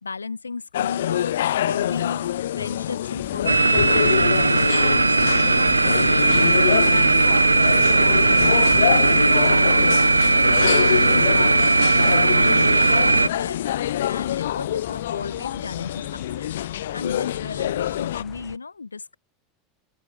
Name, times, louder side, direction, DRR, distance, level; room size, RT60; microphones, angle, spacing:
voice 1, 0.0-1.4 1.6-2.3 2.5-4.2 4.7-9.7 10.1-13.6 14.0-16.5 16.9-19.2, left 4 dB, 85° left, 1.1 m, -35 dB
sound 1, 0.7-18.2, left 12 dB, 65° left, 0.5 m, -26 dB
sound 2, 3.1-18.6, left 17 dB, 45° left, 1.3 m, -40 dB
sound 3, 3.5-13.3, right 3 dB, 85° right, 0.4 m, -18 dB
open air
figure-of-eight pair, 80°, 0 cm